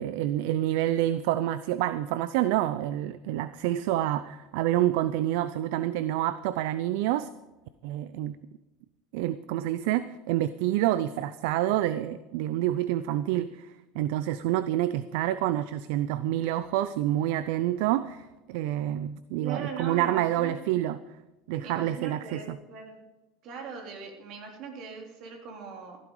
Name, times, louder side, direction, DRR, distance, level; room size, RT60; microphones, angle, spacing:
voice 1, 0.0-7.3 7.8-8.4 9.1-21.0 21.5-22.6, right 13 dB, 70° right, 15 dB, 0.5 m, -28 dB
voice 2, 19.4-20.6 21.6-23.0 23.4-26.0, right 5 dB, 55° right, 2 dB, 3.6 m, -40 dB
15.5 x 12.0 x 4.9 m, 1.1 s
supercardioid pair, 105°, 0 cm